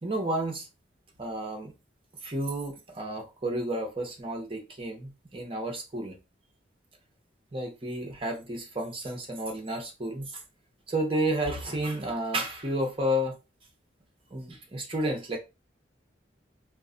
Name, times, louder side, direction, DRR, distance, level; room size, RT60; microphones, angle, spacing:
voice 1, 0.0-0.7 1.2-1.7 2.2-6.2 7.5-10.4 10.9-13.3 14.3-15.4, right 1 dB, 30° right, 0.7 m, -31 dB
2.3 x 2.1 x 3.6 m
head